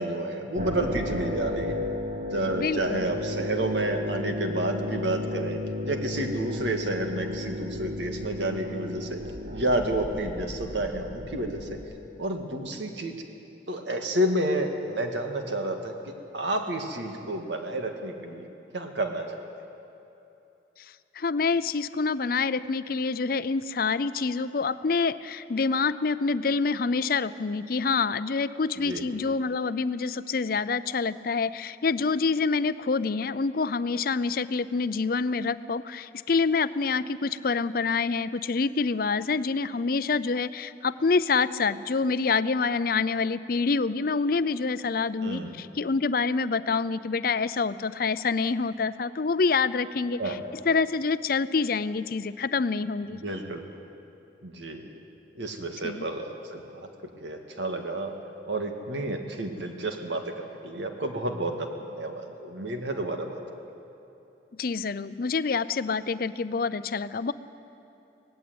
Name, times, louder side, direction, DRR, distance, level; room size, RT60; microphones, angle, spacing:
voice 1, 0.0-1.8 2.3-5.6 5.8-9.2 9.5-11.8 12.2-13.2 13.7-18.5 18.7-19.4 28.8-29.0 45.2-45.6 50.2-50.4 53.1-53.6 54.4-54.9 55.4-56.6 57.2-58.2 58.5-63.4, right 1 dB, 80° right, 4 dB, 2.0 m, -30 dB
sound 1, 0.6-11.8, left 1 dB, 45° right, 1.6 m, -33 dB
voice 2, 2.5-3.1 21.1-50.4 50.6-53.2 55.8-56.0 64.6-67.3, left 4 dB, 50° left, 15 dB, 0.5 m, -27 dB
18.5 x 15.5 x 9.5 m, 2.9 s
head